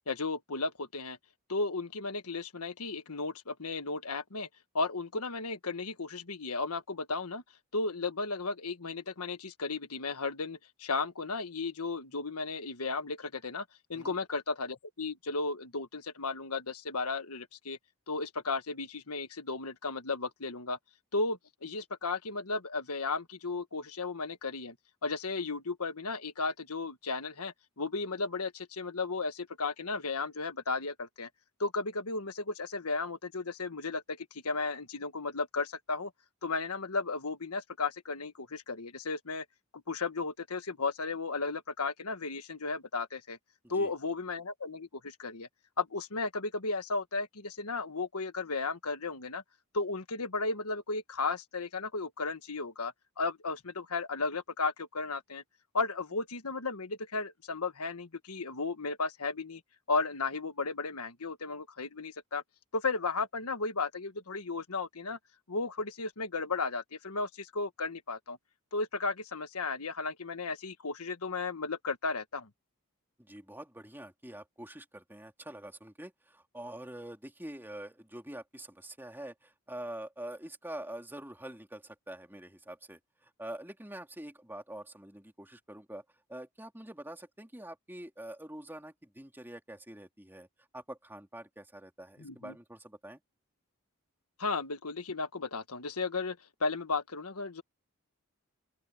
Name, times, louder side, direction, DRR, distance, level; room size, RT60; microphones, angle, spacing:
voice 1, 0.1-1.2 1.5-4.5 4.7-7.4 7.7-13.6 13.9-17.8 18.1-20.8 21.1-24.7 25.0-31.3 31.6-36.1 36.4-39.4 39.9-43.4 43.7-45.5 45.8-49.4 49.7-55.4 55.7-59.6 59.9-62.4 62.7-65.2 65.5-68.4 68.7-72.5 92.2-92.5 94.4-97.6, left 3 dB, 85° left, 1.5 m, -34 dB
voice 2, 73.2-86.0 86.3-90.5 90.7-93.2, right 1 dB, 10° right, 3.2 m, -45 dB
open air
head